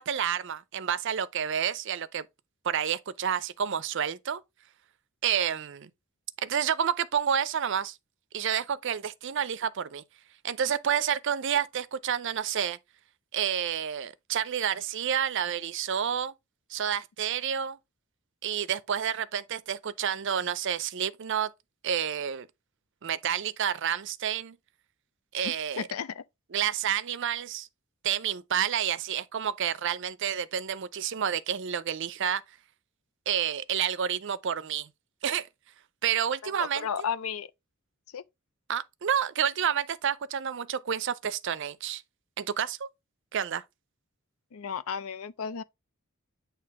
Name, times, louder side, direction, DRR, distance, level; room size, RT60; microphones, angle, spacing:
voice 1, 0.0-2.3 2.6-4.4 5.2-5.9 6.4-8.0 8.3-10.0 10.4-12.8 13.3-16.3 16.7-17.8 18.4-21.5 21.8-22.5 23.0-24.6 25.3-25.9 26.5-27.7 28.0-32.4 33.3-34.9 35.2-35.5 36.0-36.9 38.7-42.0 42.4-42.9 43.3-43.6, right 8 dB, 60° right, 0.5 m, -29 dB
voice 2, 25.4-26.2 36.4-37.5 38.1-38.2 44.5-45.6, left 7 dB, 85° left, 0.5 m, -34 dB
8.5 x 2.9 x 4.7 m
head